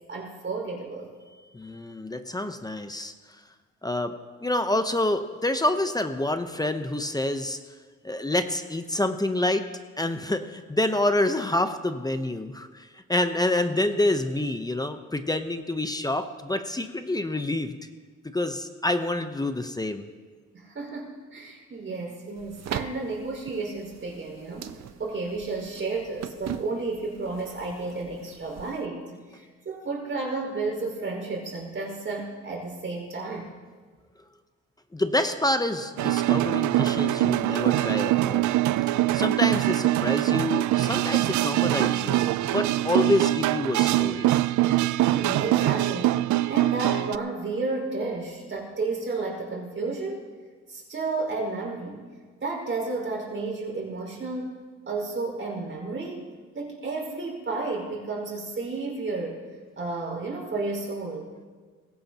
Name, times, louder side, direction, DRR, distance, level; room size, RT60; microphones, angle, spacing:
voice 1, 0.1-1.1 20.5-33.5 45.0-46.2 46.5-50.2 50.7-52.0 52.4-54.6 54.9-56.2 56.5-59.4 59.8-61.3, right 3 dB, 40° right, -1 dB, 5.0 m, -32 dB
voice 2, 1.5-3.1 3.8-4.1 4.4-7.6 8.0-9.6 10.0-17.7 18.3-20.1 34.9-38.5 39.1-44.3, left 1 dB, 15° left, 8 dB, 0.8 m, -27 dB
sound 1, 22.4-28.9, right 8 dB, 60° right, 0.8 m, -40 dB
sound 2, 36.0-47.2, right 15 dB, 75° right, 0.5 m, -23 dB
20.0 x 16.5 x 2.9 m, 1.5 s
cardioid pair, 90°, 30 cm